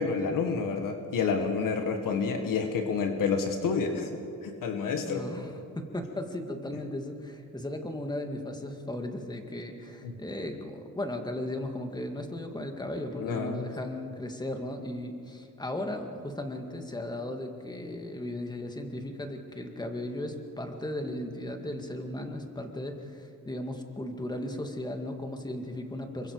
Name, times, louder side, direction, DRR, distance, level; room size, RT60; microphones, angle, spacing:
voice 1, 0.0-4.1 4.4-5.3 10.0-10.1 13.2-13.7, left 5 dB, 90° left, 4 dB, 1.8 m, -29 dB
voice 2, 5.0-26.3, left 1 dB, 15° left, 4 dB, 2.1 m, -36 dB
27.0 x 23.5 x 4.8 m, 2.5 s
cardioid pair, 120°, 32 cm